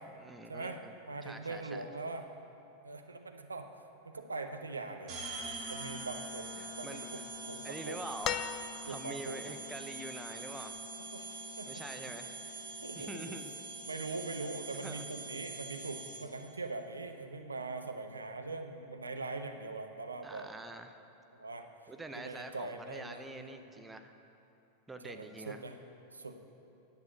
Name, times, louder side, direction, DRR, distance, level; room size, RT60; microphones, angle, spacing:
voice 1, 0.2-0.9 1.2-1.8 6.6-7.3 7.6-10.8 11.7-12.4 13.0-13.5 14.8-15.0 20.2-21.0 21.9-24.1 24.9-25.6, right 2 dB, 10° right, 6 dB, 0.7 m, -46 dB
voice 2, 1.1-2.3 2.8-3.7 4.0-5.4 5.7-6.5 6.8-8.0 8.9-9.6 11.1-11.7 12.8-13.4 13.9-20.5 21.3-21.7 22.2-23.6 25.0-25.8 26.1-26.3, right 3 dB, 75° right, 6 dB, 0.7 m, -42 dB
sound 1, 5.1-16.5, right 2 dB, 30° right, 2.7 m, -44 dB
sound 2, 8.2-9.3 10.8-10.9, left 10 dB, 35° left, 0.4 m, -37 dB
10.5 x 8.2 x 7.7 m, 2.9 s
figure-of-eight pair, 90°, 0 cm